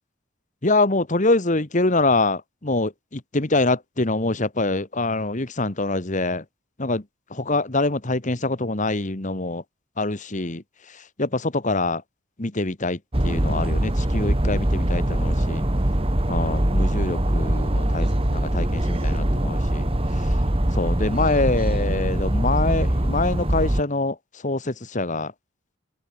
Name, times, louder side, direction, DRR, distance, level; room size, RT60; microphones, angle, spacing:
voice 1, 0.6-6.4 6.8-7.0 7.3-9.6 10.0-12.0 12.4-15.6 16.3-19.9 20.7-24.2 24.4-25.3, left 2 dB, 35° left, 1.6 m, -25 dB
sound 1, 13.1-23.8, right 1 dB, 25° right, 1.8 m, -22 dB
open air
head